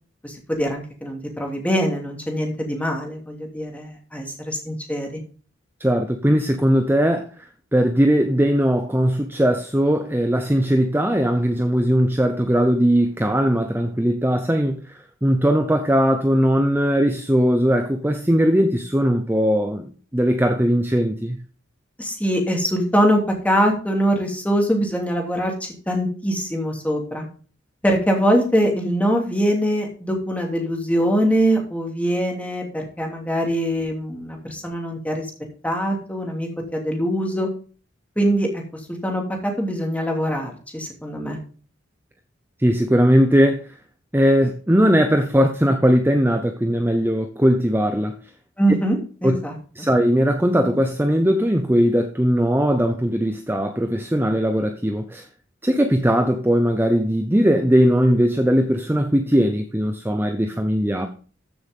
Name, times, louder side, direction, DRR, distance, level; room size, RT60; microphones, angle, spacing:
voice 1, 0.2-5.2 22.0-27.3 27.8-35.3 35.6-37.5 38.2-38.6 39.0-41.4 48.6-49.9, equal, 10° left, 2.9 m, -23 dB
voice 2, 5.8-7.3 7.7-14.9 15.2-21.4 42.6-43.6 44.1-48.2 49.2-49.4 49.8-55.3 55.6-61.1, equal, 10° right, 0.8 m, -19 dB
14.5 x 6.9 x 3.7 m
head